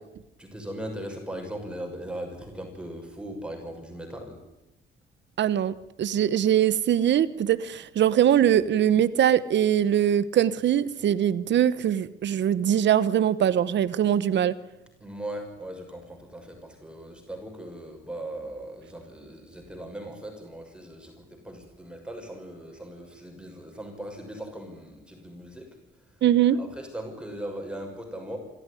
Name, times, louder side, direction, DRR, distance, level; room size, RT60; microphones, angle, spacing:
voice 1, 0.4-4.4 15.0-25.8 26.6-28.4, right 1 dB, 5° right, 3 dB, 6.1 m, -39 dB
voice 2, 5.4-14.5 26.2-26.6, right 10 dB, 65° right, 16 dB, 1.0 m, -22 dB
26.5 x 14.0 x 9.9 m, 0.98 s
cardioid pair, 90°, 20 cm